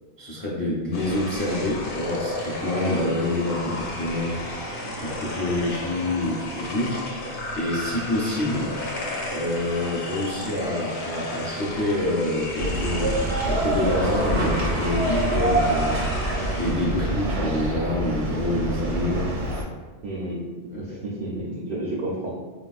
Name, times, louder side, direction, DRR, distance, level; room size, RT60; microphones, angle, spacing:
voice 1, 0.2-4.4 5.0-8.7 9.3-16.0 16.6-19.3 20.9-21.0, left 1 dB, 20° left, -7 dB, 0.6 m, -27 dB
sound 1, 0.9-18.2, left 1 dB, 60° left, 0.7 m, -34 dB
sound 2, 12.6-19.6, right 1 dB, 90° right, 1.1 m, -25 dB
voice 2, 20.0-22.4, right 1 dB, 60° right, -3 dB, 0.7 m, -31 dB
3.9 x 2.3 x 2.3 m, 1.3 s
omnidirectional pair, 1.2 m